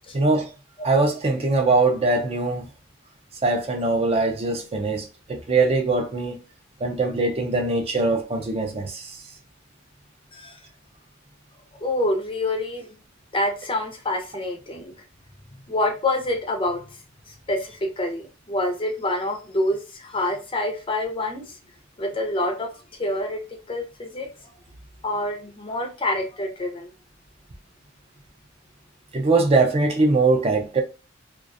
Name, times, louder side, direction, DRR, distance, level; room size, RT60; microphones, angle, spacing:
voice 1, 0.1-0.5 0.8-2.7 3.4-6.4 6.8-9.1 29.1-30.8, right 3 dB, 30° right, 0.4 m, -22 dB
voice 2, 11.8-12.9 13.3-14.9 15.7-16.8 17.5-21.4 22.0-22.7 23.0-23.4 23.7-24.3 25.0-26.9, left 1 dB, 25° left, 0.5 m, -26 dB
2.4 x 2.2 x 2.5 m
head